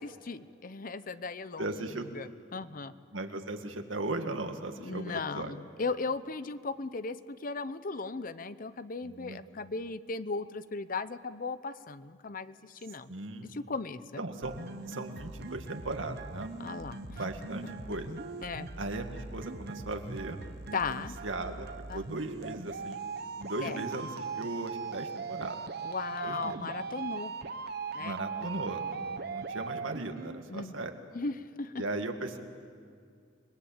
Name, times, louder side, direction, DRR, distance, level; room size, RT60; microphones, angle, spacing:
voice 1, 0.0-1.8 2.1-2.9 4.8-13.1 13.5-14.0 16.6-17.2 18.4-18.7 20.7-21.1 21.9-22.0 23.6-23.8 25.8-27.3 27.9-28.1 30.5-30.7 31.1-31.8, left 4 dB, 45° left, 14 dB, 0.7 m, -37 dB
voice 2, 1.6-2.1 3.1-5.5 9.0-9.4 13.1-13.5 14.2-14.5 14.9-16.5 17.1-18.1 18.8-20.4 20.9-21.0 21.2-21.7 21.9-23.0 23.4-25.6 26.2-26.6 28.0-31.0 31.8-32.4, right 2 dB, 80° right, 5 dB, 2.0 m, -37 dB
sound 1, 14.4-30.4, right 4 dB, 55° right, 1.0 m, -40 dB
29.0 x 21.5 x 8.8 m, 2.2 s
head